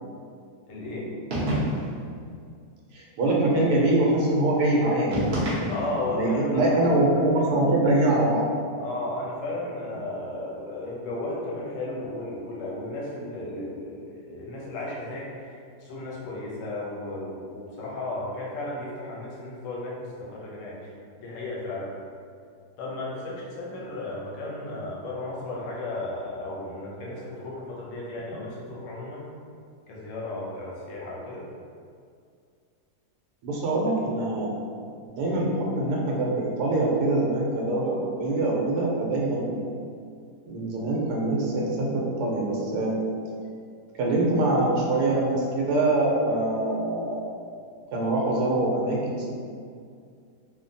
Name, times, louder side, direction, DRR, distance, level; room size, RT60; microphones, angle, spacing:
voice 1, 0.7-1.1 5.7-6.7 8.8-20.9 21.2-21.9 22.8-29.3 29.9-31.5, left 2 dB, 65° left, -5 dB, 0.9 m, -34 dB
sound 1, 1.3-2.0 5.1-6.1, right 1 dB, 50° right, 0.7 m, -28 dB
voice 2, 2.9-5.9 6.1-8.5 33.4-34.6 35.1-39.7 40.5-43.0 44.0-47.2 47.9-49.3, right 2 dB, 80° right, -3 dB, 1.1 m, -24 dB
3.1 x 2.1 x 2.6 m, 2.3 s
omnidirectional pair, 1.7 m